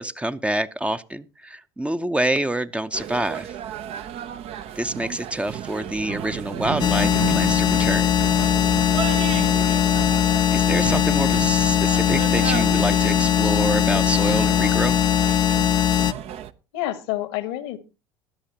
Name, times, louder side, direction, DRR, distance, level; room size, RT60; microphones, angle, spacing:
voice 1, 0.0-3.5 4.8-8.1 10.5-15.0, right 1 dB, 10° right, 11 dB, 0.6 m, -27 dB
sound 1, 2.9-16.5, right 10 dB, 55° right, 0.7 m, -33 dB
sound 2, 6.8-16.1, left 10 dB, 35° left, 0.5 m, -20 dB
voice 2, 9.3-10.1 16.7-17.8, left 14 dB, 75° left, 15 dB, 1.2 m, -30 dB
16.0 x 11.0 x 2.9 m, 0.30 s
hypercardioid pair, 65°, 12 cm